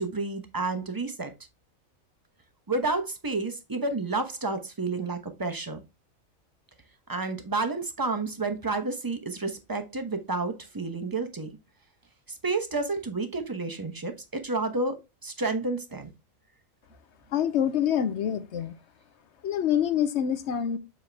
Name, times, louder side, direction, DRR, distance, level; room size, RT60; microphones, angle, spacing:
voice 1, 0.0-1.3 2.7-5.8 7.1-11.6 12.3-16.1, right 3 dB, 20° right, 0.8 m, -30 dB
voice 2, 17.3-18.7 19.4-20.8, left 9 dB, 60° left, 0.8 m, -26 dB
7.5 x 4.4 x 3.4 m
omnidirectional pair, 1.4 m